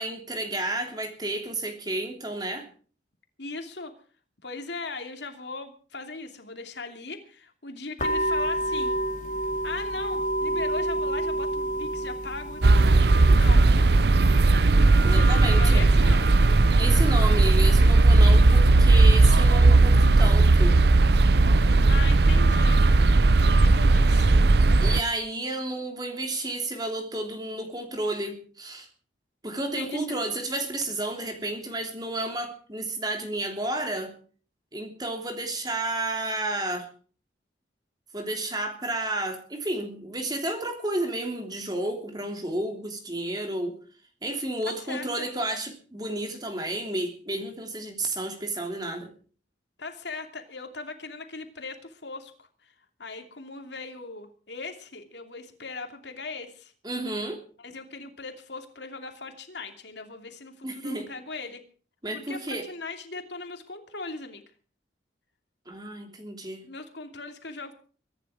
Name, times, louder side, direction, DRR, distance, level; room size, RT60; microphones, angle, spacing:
voice 1, 0.0-2.7 15.0-15.9 16.8-20.8 24.8-28.9 29.4-34.1 34.7-36.9 38.1-43.8 44.2-49.1 56.8-57.4 60.6-61.1 62.0-62.6 65.7-66.6, right 1 dB, 20° right, 4 dB, 3.0 m, -31 dB
voice 2, 3.4-3.9 4.4-9.0 9.6-12.6 13.4-13.9 15.1-16.3 21.9-22.8 23.4-24.5 29.7-30.2 44.6-45.3 49.8-52.7 53.0-56.7 57.6-61.6 62.1-64.4 66.6-67.7, left 3 dB, 70° left, 5 dB, 2.8 m, -39 dB
sound 1, 8.0-18.6, right 1 dB, 40° left, 2.5 m, -31 dB
sound 2, 12.6-25.0, right 2 dB, 60° right, 0.6 m, -17 dB
23.5 x 10.5 x 5.0 m, 0.41 s
head